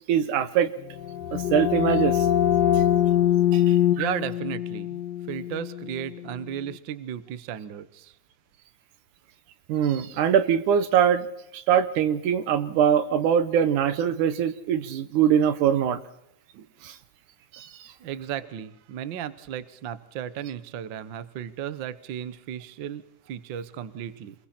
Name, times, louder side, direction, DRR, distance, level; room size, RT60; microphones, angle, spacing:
voice 1, 0.1-0.7 1.3-2.3 3.5-4.1 9.7-11.3 11.5-16.0 16.8-16.9 17.5-17.7, right 8 dB, 75° right, 11 dB, 2.5 m, -22 dB
sound 1, 0.8-6.4, left 11 dB, 60° left, 2.2 m, -23 dB
voice 2, 4.0-5.0 5.3-8.1 18.0-24.3, right 9 dB, 90° right, 13 dB, 1.0 m, -35 dB
27.5 x 21.5 x 4.3 m, 0.80 s
omnidirectional pair, 3.7 m